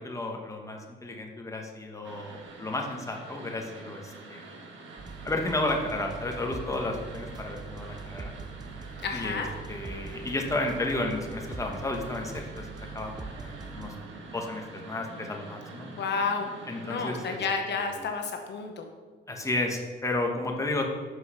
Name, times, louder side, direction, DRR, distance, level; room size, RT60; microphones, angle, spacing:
voice 1, 0.0-4.6 5.2-8.3 9.1-12.7 12.9-13.9 14.3-15.9 16.7-17.4 19.3-20.8, left 2 dB, 15° left, 1 dB, 1.2 m, -32 dB
sound 1, 2.0-17.4, right 3 dB, 75° right, 1.5 m, -46 dB
sound 2, 5.0-13.9, right 4 dB, 20° right, 0.6 m, -42 dB
voice 2, 9.0-9.5 15.9-16.5 16.8-18.8, left 5 dB, 60° left, 4 dB, 0.9 m, -31 dB
6.2 x 5.4 x 5.7 m, 1.5 s
cardioid pair, 90°, 20 cm